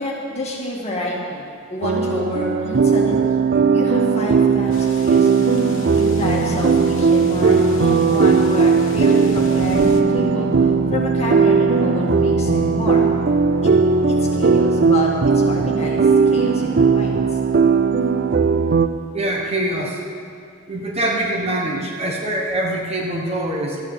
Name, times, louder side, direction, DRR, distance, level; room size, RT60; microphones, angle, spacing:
voice 1, 0.0-3.4 3.7-5.5 6.0-10.5 10.9-13.0 13.6-13.7 14.1-17.4, left 1 dB, 30° left, -3 dB, 2.1 m, -29 dB
sound 1, 1.8-18.9, right 5 dB, 45° right, 0.5 m, -17 dB
sound 2, 4.7-10.0, left 3 dB, 60° left, 1.1 m, -37 dB
sound 3, 5.3-16.8, left 2 dB, 75° right, 1.0 m, -29 dB
voice 2, 19.1-20.0 20.7-23.8, right 1 dB, 30° right, -1 dB, 1.2 m, -24 dB
12.5 x 9.2 x 6.7 m, 2.3 s
head